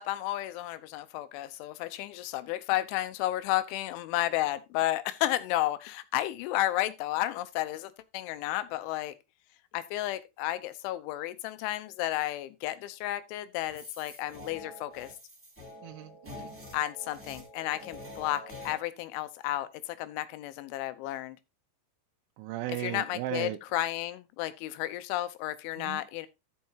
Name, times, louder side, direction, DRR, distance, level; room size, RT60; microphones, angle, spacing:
voice 1, 0.0-9.1 9.7-15.1 16.7-21.4 22.7-26.3, left 15 dB, 85° left, 3.2 m, -32 dB
sound 1, 13.7-18.8, left 1 dB, 5° right, 2.1 m, -46 dB
voice 2, 15.8-16.5 22.4-23.6 25.8-26.0, right 15 dB, 85° right, 3.0 m, -36 dB
15.0 x 5.6 x 2.8 m
omnidirectional pair, 5.3 m